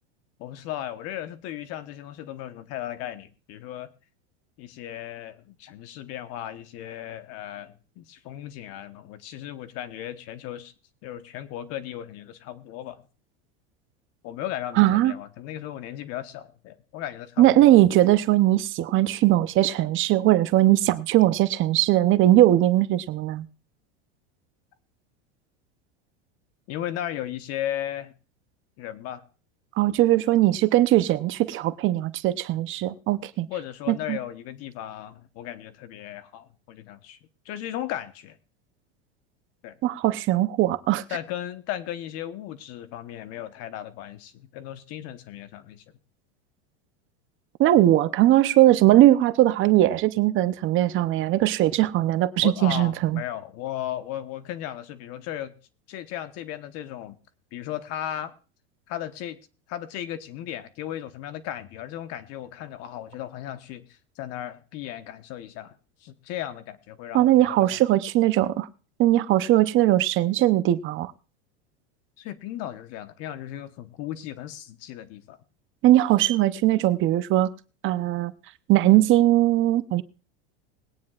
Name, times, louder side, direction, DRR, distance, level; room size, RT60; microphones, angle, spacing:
voice 1, 0.4-3.9 4.6-10.7 11.0-13.1 14.2-17.7 26.7-28.1 28.8-29.2 33.5-37.2 37.4-38.4 39.6-39.7 41.1-45.8 51.8-51.9 52.4-55.5 55.9-57.1 57.5-58.3 58.9-59.4 59.7-65.7 66.0-67.8 72.2-75.4, left 12 dB, 50° left, 1.2 m, -36 dB
voice 2, 14.8-15.1 17.4-23.5 29.8-33.5 33.9-34.2 39.8-41.0 47.6-53.2 67.1-68.7 69.0-71.1 75.8-77.5 77.8-78.3 78.7-80.0, right 14 dB, 40° right, 0.7 m, -20 dB
21.0 x 9.3 x 2.4 m
supercardioid pair, 125°, 32 cm